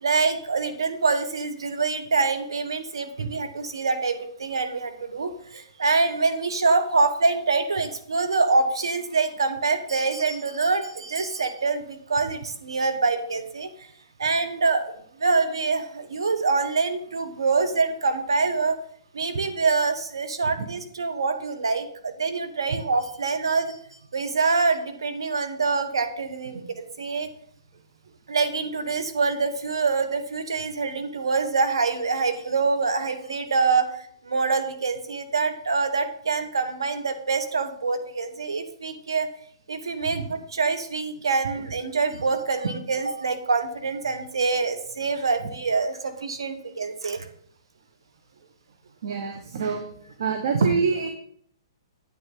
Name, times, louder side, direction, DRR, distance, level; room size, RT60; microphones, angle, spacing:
voice 1, 0.0-13.7 14.2-18.7 19.1-23.8 24.1-27.3 28.3-39.3 39.7-47.3, right 4 dB, 85° right, 7 dB, 1.3 m, -25 dB
voice 2, 49.0-49.9 50.2-51.1, right 5 dB, 65° right, 5 dB, 1.3 m, -26 dB
9.4 x 9.0 x 3.8 m, 0.64 s
hypercardioid pair, 135°, 2 cm